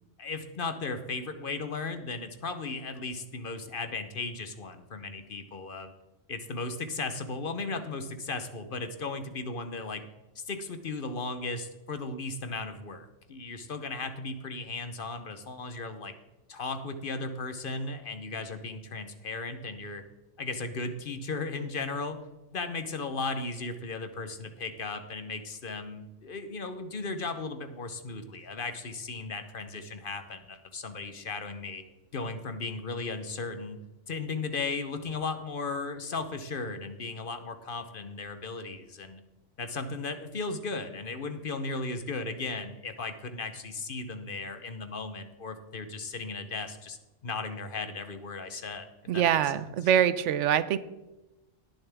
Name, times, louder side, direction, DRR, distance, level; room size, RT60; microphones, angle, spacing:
voice 1, 0.0-5.9 6.3-10.0 10.4-16.1 16.5-20.0 20.4-22.2 22.5-31.8 32.1-33.8 34.1-39.2 39.6-47.0 47.2-48.9 49.1-49.9, left 3 dB, 50° left, 9 dB, 1.0 m, -36 dB
voice 2, 49.1-50.8, right 10 dB, 80° right, 15 dB, 0.9 m, -24 dB
18.5 x 6.9 x 3.5 m, 1.0 s
omnidirectional pair, 1.2 m